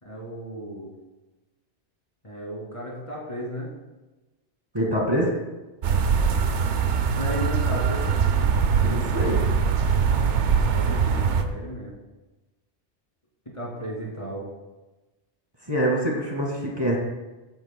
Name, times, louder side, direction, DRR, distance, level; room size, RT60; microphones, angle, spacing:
voice 1, 0.0-0.9 2.2-3.7 7.2-8.1 10.1-11.9 13.5-14.5, equal, 30° left, -4 dB, 2.7 m, -35 dB
voice 2, 4.7-5.3 8.8-9.4 15.7-17.0, right 1 dB, 20° right, -2 dB, 2.2 m, -25 dB
sound 1, 5.8-11.4, right 6 dB, 85° right, 1.0 m, -22 dB
15.0 x 9.2 x 2.3 m, 1.1 s
omnidirectional pair, 1.2 m